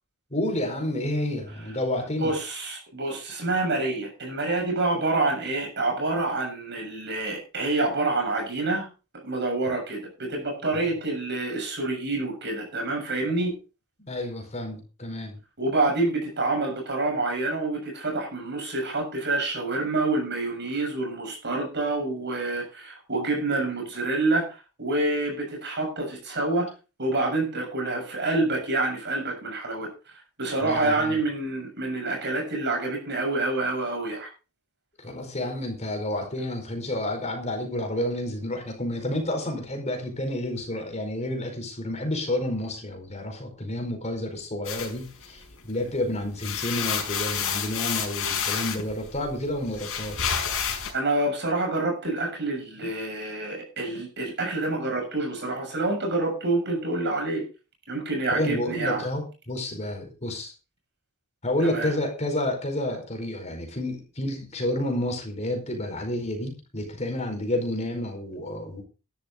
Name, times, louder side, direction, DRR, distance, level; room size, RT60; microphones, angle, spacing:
voice 1, 0.3-2.3 9.7-9.8 10.7-10.9 14.0-15.4 30.6-31.2 35.0-50.3 58.3-60.5 61.4-68.8, left 1 dB, 30° left, 3 dB, 4.9 m, -30 dB
voice 2, 2.2-8.9 9.2-13.6 15.6-26.7 27.0-29.9 30.4-34.3 50.9-57.4 57.9-59.0 61.6-61.9, right 2 dB, 55° right, 2 dB, 7.1 m, -27 dB
sound 1, 44.7-45.8 46.2-50.9, left 7 dB, 65° left, 5.0 m, -30 dB
13.0 x 12.0 x 3.9 m, 0.32 s
head